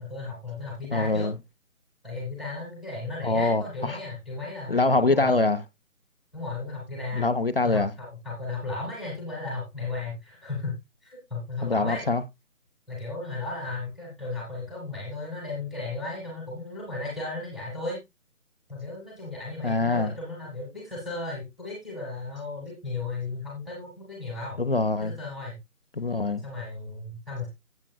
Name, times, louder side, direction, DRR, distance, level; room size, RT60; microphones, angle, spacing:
voice 1, 0.0-1.3 2.0-5.4 6.3-7.3 7.6-12.1 12.9-18.0 18.7-24.6 25.0-25.6 26.4-27.5, left 3 dB, ahead, 1.5 m, -35 dB
voice 2, 0.9-1.4 3.2-4.0 4.7-5.6 7.1-7.9 11.6-12.2 19.6-20.1 24.6-25.2 26.0-26.4, left 3 dB, 40° left, 0.7 m, -24 dB
15.5 x 7.5 x 2.2 m
figure-of-eight pair, 160°, 43 cm